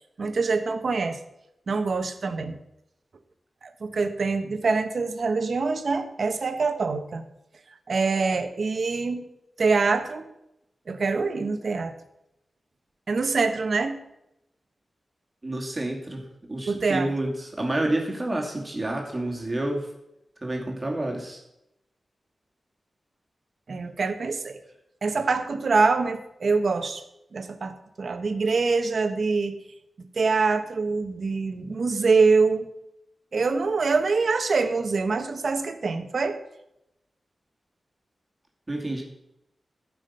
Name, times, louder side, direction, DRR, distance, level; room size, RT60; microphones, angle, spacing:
voice 1, 0.2-1.2 1.7-2.6 3.6-7.2 7.9-9.2 9.6-10.3 10.9-11.9 13.1-14.0 16.7-17.1 23.7-24.6 25.0-27.0 27.3-29.5 30.1-32.7 33.3-36.4, right 4 dB, 60° right, 8 dB, 1.1 m, -24 dB
voice 2, 15.4-19.9 20.4-21.4 38.7-39.0, right 1 dB, 25° right, 0 dB, 2.4 m, -29 dB
14.0 x 6.0 x 5.6 m, 0.83 s
wide cardioid pair, 115°, 0 cm